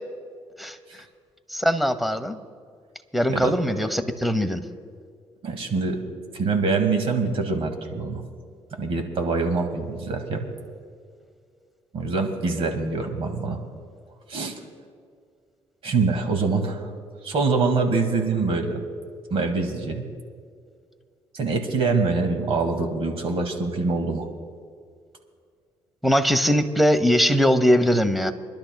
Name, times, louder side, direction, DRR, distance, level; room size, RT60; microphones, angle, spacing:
voice 1, 1.5-2.4 3.1-4.6 26.0-28.3, equal, ahead, 11 dB, 0.9 m, -21 dB
voice 2, 5.4-6.0 6.3-8.2 8.8-10.5 11.9-13.6 14.3-14.6 15.8-16.9 17.2-18.8 19.3-20.1 21.3-24.3, right 4 dB, 60° right, 5 dB, 2.0 m, -24 dB
28.0 x 11.5 x 2.3 m, 2.1 s
cardioid pair, 85°, 11 cm